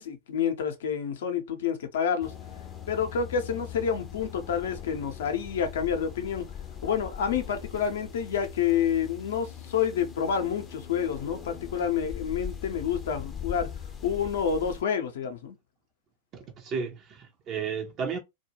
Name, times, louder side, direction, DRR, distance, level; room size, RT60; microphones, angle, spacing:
voice 1, 0.0-2.3 2.9-6.5 6.8-13.7 14.0-15.5, left 7 dB, 60° left, 0.6 m, -28 dB
sound 1, 2.2-14.8, left 8 dB, 20° left, 0.5 m, -41 dB
voice 2, 16.3-18.2, right 6 dB, 35° right, 0.5 m, -33 dB
2.2 x 2.2 x 2.9 m
figure-of-eight pair, 90°, 0 cm